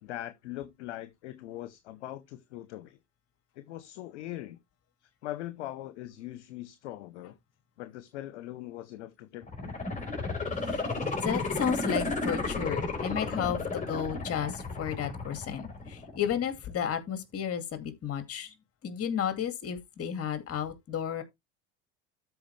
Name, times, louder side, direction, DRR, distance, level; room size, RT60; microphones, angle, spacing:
voice 1, 0.0-3.0 3.6-4.6 5.0-7.3 7.8-9.7, left 14 dB, 75° left, 0.9 m, -41 dB
sound 1, 9.4-16.4 16.8-16.9, left 3 dB, 20° left, 4.2 m, -33 dB
voice 2, 11.2-18.5 18.8-21.2, left 8 dB, 40° left, 2.3 m, -33 dB
13.0 x 4.7 x 3.3 m
hypercardioid pair, 80°, 34 cm